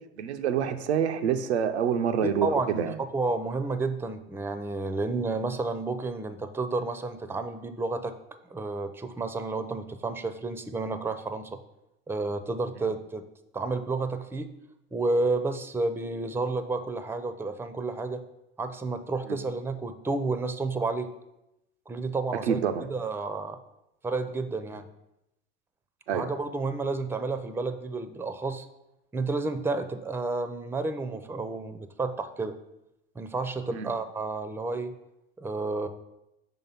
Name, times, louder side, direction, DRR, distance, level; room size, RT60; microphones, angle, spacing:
voice 1, 0.2-3.0 22.4-22.9 26.1-26.3 33.7-33.9, right 8 dB, 90° right, 7 dB, 0.5 m, -27 dB
voice 2, 2.4-8.1 8.5-11.6 12.1-13.2 13.5-14.5 14.9-18.2 18.6-21.1 21.9-22.6 22.9-23.6 24.0-24.8 26.1-28.6 29.1-32.5 33.2-35.0 35.4-35.9, right 3 dB, 5° right, 10 dB, 0.5 m, -31 dB
5.1 x 3.8 x 5.6 m, 0.88 s
hypercardioid pair, 75°, 32 cm